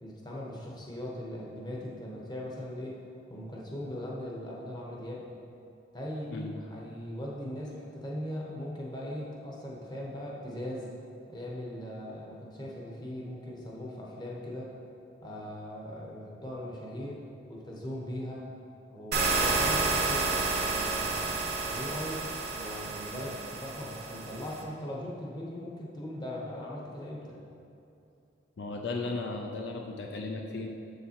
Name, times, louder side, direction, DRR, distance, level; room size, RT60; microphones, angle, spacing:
voice 1, 0.0-3.0 3.3-5.3 5.9-10.9 11.3-14.7 15.2-17.2 17.5-18.5 18.9-22.3 22.5-27.4, left 1 dB, 20° left, -3 dB, 0.8 m, -39 dB
sound 1, 19.1-24.6, right 3 dB, 55° right, 0.8 m, -30 dB
voice 2, 28.6-30.7, left 3 dB, 70° left, 2 dB, 0.4 m, -35 dB
7.2 x 6.7 x 2.9 m, 2.7 s
head